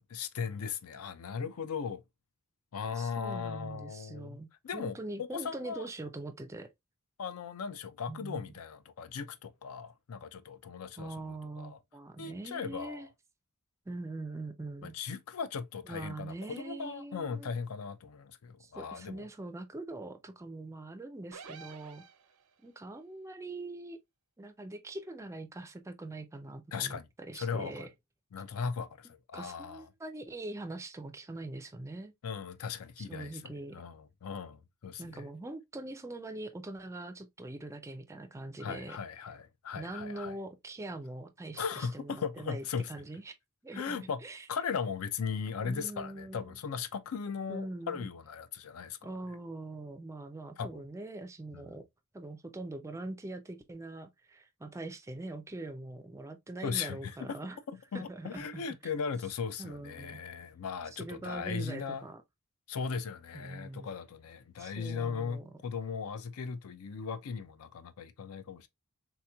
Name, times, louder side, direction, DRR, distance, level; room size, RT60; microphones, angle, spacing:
voice 1, 0.0-2.0 2.7-4.4 4.6-5.8 7.2-11.2 11.6-11.8 12.2-13.1 14.8-19.3 26.7-27.1 27.3-27.9 28.3-29.9 32.2-35.3 38.6-40.3 41.6-42.9 43.7-44.2 44.5-49.1 50.6-50.7 51.5-51.7 56.6-57.4 57.7-62.0 62.7-68.7, left 6 dB, 70° left, 0.4 m, -38 dB
voice 2, 2.9-6.7 8.1-8.5 11.0-13.1 13.9-14.9 15.9-17.5 18.6-22.0 22.6-24.0 24.4-27.9 29.3-32.1 33.0-33.8 35.0-39.0 39.7-43.3 43.6-44.5 45.6-46.6 47.5-48.1 49.0-51.8 52.1-57.6 57.9-58.6 59.6-60.2 60.9-62.2 63.3-63.9 64.6-65.4, right 2 dB, 15° right, 0.4 m, -43 dB
sound 1, 21.3-22.7, right 5 dB, 85° right, 0.6 m, -50 dB
3.5 x 2.9 x 2.3 m
head